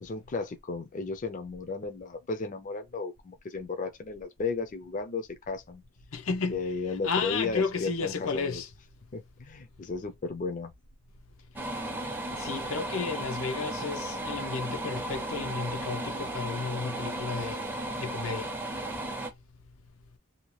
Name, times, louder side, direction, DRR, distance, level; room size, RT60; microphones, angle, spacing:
voice 1, 0.0-5.8 6.5-8.6 9.1-10.7, left 4 dB, 40° left, 0.5 m, -34 dB
voice 2, 6.1-6.6 7.0-8.7 12.3-17.6 18.0-18.5, left 5 dB, 85° left, 0.6 m, -32 dB
sound 1, 11.6-19.3, right 1 dB, 10° right, 0.5 m, -35 dB
2.8 x 2.3 x 3.0 m
head